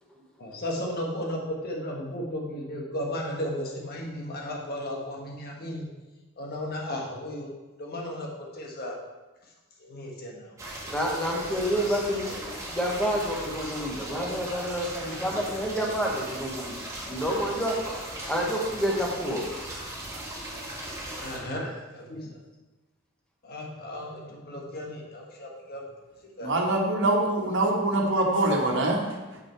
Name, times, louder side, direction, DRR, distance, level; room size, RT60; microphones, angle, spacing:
voice 1, 0.4-5.9 6.4-7.5 7.8-8.9 9.8-10.6 11.7-12.0 14.5-15.1 21.2-22.4 23.4-25.8 26.2-26.6, left 1 dB, 50° left, -1 dB, 1.6 m, -35 dB
sound 1, 10.6-21.4, right 1 dB, 15° right, 2.0 m, -38 dB
voice 2, 10.8-16.7 17.0-17.8 18.3-19.5, equal, 5° left, -2 dB, 1.4 m, -29 dB
voice 3, 26.4-29.4, right 2 dB, 60° right, 0 dB, 1.5 m, -24 dB
8.0 x 6.1 x 4.6 m, 1.2 s
head